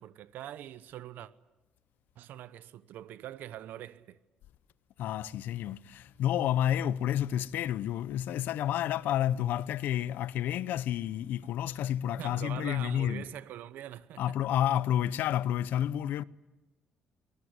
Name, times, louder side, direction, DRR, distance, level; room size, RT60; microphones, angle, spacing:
voice 1, 0.0-1.3 2.2-4.2 12.2-14.4, right 12 dB, 75° right, 1.0 m, -43 dB
voice 2, 5.0-13.3 14.2-16.2, left 11 dB, 75° left, 0.8 m, -30 dB
25.0 x 20.5 x 9.7 m
cardioid pair, 135°, 3 cm